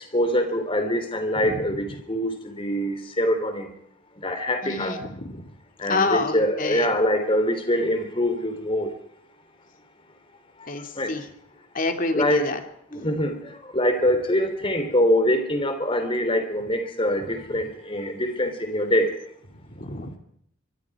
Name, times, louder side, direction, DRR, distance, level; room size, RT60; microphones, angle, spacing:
voice 1, 0.0-3.7 4.2-5.0 5.8-8.9 11.0-11.1 12.1-12.5 12.9-13.4 13.7-19.1, equal, 25° left, 7 dB, 3.3 m, -24 dB
voice 2, 1.4-2.0 4.6-5.4 5.9-6.9 10.7-11.3 11.7-12.6 19.7-20.2, left 3 dB, 40° left, 6 dB, 2.4 m, -28 dB
24.0 x 23.5 x 4.8 m, 0.69 s
head